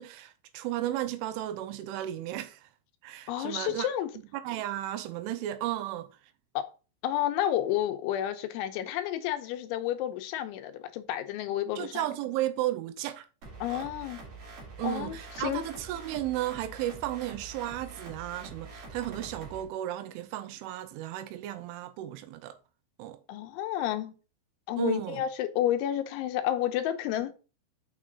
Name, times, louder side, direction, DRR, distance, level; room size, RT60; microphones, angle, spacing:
voice 1, 0.0-2.7 3.0-3.9 4.4-6.1 11.8-13.3 13.7-13.9 14.8-22.6 23.0-23.2 24.8-25.2, right 13 dB, 85° right, 3.1 m, -34 dB
voice 2, 3.3-4.1 6.6-6.7 7.0-12.0 13.6-14.2 14.8-15.6 23.3-24.1 24.7-27.3, left 12 dB, 80° left, 3.0 m, -30 dB
sound 1, 13.4-19.6, right 3 dB, 50° right, 3.1 m, -45 dB
7.5 x 6.3 x 3.9 m
omnidirectional pair, 5.7 m